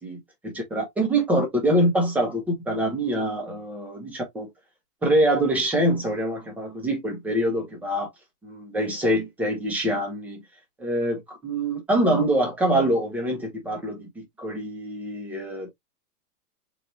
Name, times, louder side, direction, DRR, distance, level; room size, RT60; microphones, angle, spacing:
voice 1, 0.0-4.5 5.0-8.1 8.4-10.4 10.8-15.7, right 1 dB, 5° right, 0.8 m, -25 dB
4.2 x 2.7 x 3.1 m
hypercardioid pair, 165°, 46 cm